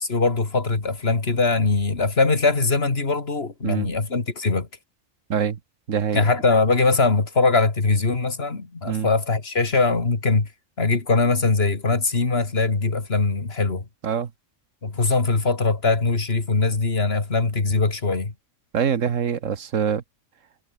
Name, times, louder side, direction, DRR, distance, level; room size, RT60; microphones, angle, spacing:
voice 1, 0.0-4.7 6.1-10.5 10.8-13.8 14.8-18.3, left 3 dB, 50° left, 2.7 m, -21 dB
voice 2, 5.9-6.2 8.9-9.1 14.0-14.3 18.7-20.0, right 7 dB, 80° right, 1.6 m, -24 dB
omnidirectional pair, 1.3 m